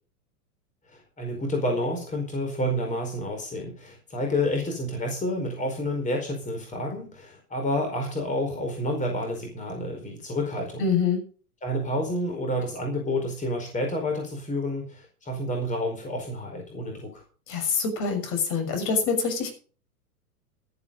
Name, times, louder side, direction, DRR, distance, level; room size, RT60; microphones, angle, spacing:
voice 1, 0.9-10.8 11.6-17.2, left 1 dB, 15° left, 3 dB, 4.7 m, -29 dB
voice 2, 10.8-11.2 17.5-19.5, left 5 dB, 45° left, 5 dB, 6.5 m, -25 dB
12.5 x 11.5 x 5.4 m, 0.38 s
hypercardioid pair, 105°, 46 cm